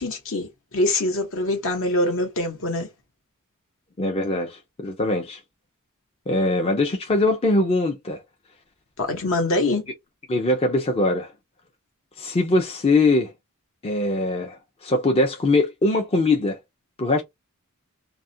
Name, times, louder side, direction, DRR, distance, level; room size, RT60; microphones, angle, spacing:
voice 1, 0.0-2.9 9.0-9.9, left 2 dB, 65° left, 1.0 m, -24 dB
voice 2, 4.0-5.4 6.3-8.2 10.3-11.3 12.2-13.3 13.8-16.6 17.0-17.2, left 2 dB, 25° left, 0.4 m, -22 dB
2.4 x 2.1 x 2.6 m
head